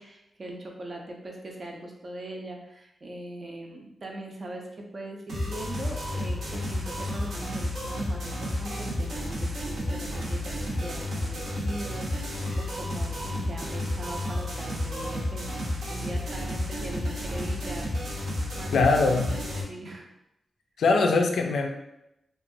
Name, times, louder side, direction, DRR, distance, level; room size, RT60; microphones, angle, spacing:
voice 1, 0.0-17.9 18.2-20.1, right 1 dB, 40° right, 1 dB, 0.5 m, -40 dB
sound 1, 5.3-19.6, left 1 dB, 70° right, 0.7 m, -31 dB
voice 2, 18.7-19.3 20.8-21.7, left 3 dB, 90° left, 3 dB, 0.3 m, -22 dB
2.9 x 2.2 x 2.6 m, 0.86 s
wide cardioid pair, 145°, 0 cm